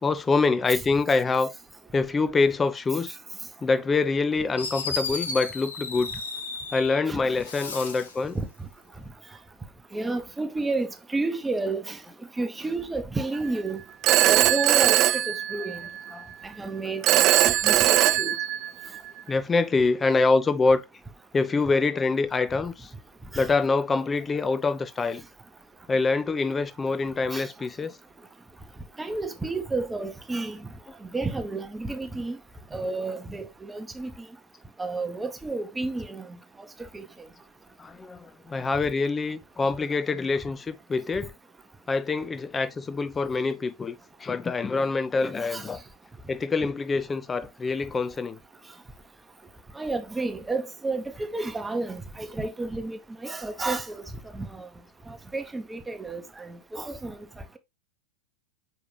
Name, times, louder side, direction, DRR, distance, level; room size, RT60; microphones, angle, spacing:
voice 1, 0.0-1.5 1.9-3.2 3.6-6.1 6.7-8.4 15.6-15.8 16.1-16.2 19.3-20.8 21.3-22.9 23.4-25.2 25.9-28.0 30.9-31.0 37.8-41.3 41.9-45.8 46.3-48.4, left 4 dB, 15° left, 0.7 m, -25 dB
Fireworks, 4.2-4.3 4.6-7.0 7.4-8.2, left 4 dB, 70° left, 1.5 m, -34 dB
voice 2, 9.9-12.0 12.4-13.8 14.2-15.0 15.3-15.8 16.4-17.3 17.6-17.9 18.2-18.4 23.3-23.5 27.3-27.5 29.0-30.6 31.1-32.4 32.7-34.1 34.8-36.3 45.5-45.6 49.8-54.0 54.3-54.7 55.1-57.2, right 3 dB, 10° right, 1.0 m, -31 dB
Telephone, 14.0-16.0 17.0-19.0, right 14 dB, 35° right, 0.3 m, -21 dB
6.5 x 4.7 x 3.3 m
figure-of-eight pair, 90°, 0 cm